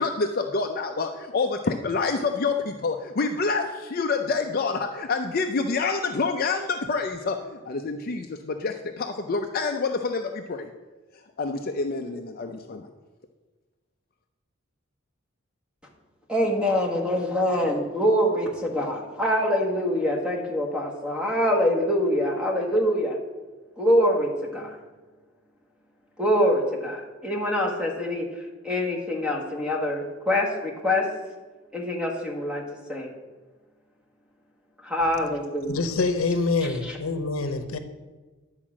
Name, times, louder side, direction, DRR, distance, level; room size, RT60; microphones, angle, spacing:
voice 1, 0.0-10.7 11.1-12.9, left 4 dB, 45° left, 0.5 m, -27 dB
voice 2, 16.3-23.2 23.8-24.7 26.2-28.3 28.6-31.1 31.7-32.6 32.9-33.1 34.8-35.8 36.8-36.9, equal, 5° right, 1.6 m, -24 dB
voice 3, 35.7-37.8, left 3 dB, 80° left, 0.8 m, -26 dB
10.5 x 4.9 x 7.4 m
head